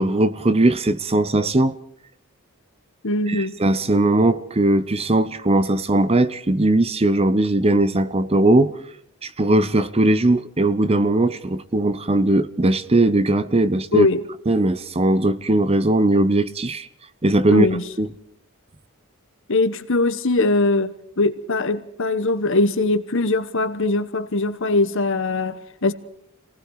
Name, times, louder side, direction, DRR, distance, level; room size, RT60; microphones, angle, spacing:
voice 1, 0.0-1.8 3.3-8.7 9.2-14.1 14.5-16.9 17.2-17.7 18.0-18.1, right 1 dB, 25° right, 0.8 m, -19 dB
voice 2, 3.0-3.6 13.9-14.2 17.5-17.8 19.5-25.9, left 2 dB, 55° left, 1.2 m, -21 dB
29.5 x 19.0 x 4.8 m
head